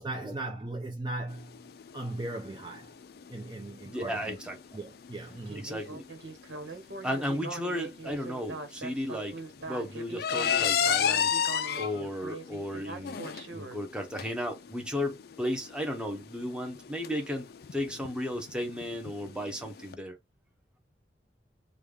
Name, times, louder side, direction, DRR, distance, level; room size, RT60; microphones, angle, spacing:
voice 1, 0.0-1.6 1.9-2.9 3.3-4.4 4.7-5.7 6.7-6.8, right 2 dB, 25° right, 0.6 m, -38 dB
sound 1, 1.3-19.9, left 8 dB, 60° left, 0.4 m, -34 dB
voice 2, 3.8-4.6 5.6-6.1 7.0-11.3 11.7-13.2 13.5-20.2, equal, 5° right, 0.9 m, -34 dB
Speech synthesizer, 5.5-13.8, right 3 dB, 85° right, 1.2 m, -41 dB
3.4 x 2.4 x 3.3 m
head